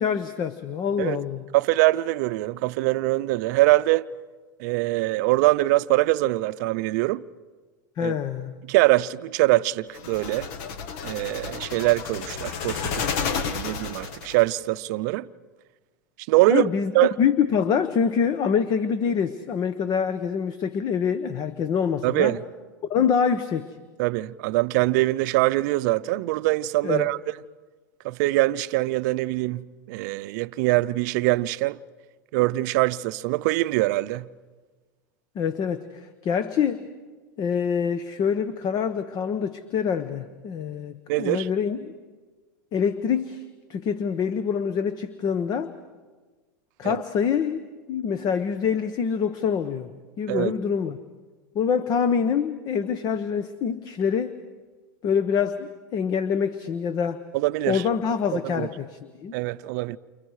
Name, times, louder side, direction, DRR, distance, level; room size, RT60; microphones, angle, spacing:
voice 1, 0.0-1.5 8.0-8.5 16.5-16.9 17.2-22.3 22.9-23.7 26.8-27.1 35.3-36.9 37.4-41.9 42.7-43.4 43.7-45.7 46.8-47.6 47.9-49.9 50.2-51.0 51.5-54.4 55.0-57.2 57.7-59.3, left 7 dB, 40° left, 1.1 m, -25 dB
voice 2, 1.5-4.1 4.6-7.2 8.0-8.1 8.7-10.5 11.0-15.3 16.3-16.7 16.9-17.2 22.0-22.4 24.0-27.2 28.0-31.8 32.3-34.3 41.1-41.5 46.8-47.0 50.3-50.5 57.3-57.8 58.3-58.7 59.3-60.0, right 19 dB, 65° right, 0.6 m, -23 dB
sound 1, 9.9-14.5, left 6 dB, 60° left, 1.6 m, -31 dB
29.5 x 28.5 x 4.9 m
hypercardioid pair, 110°, 10 cm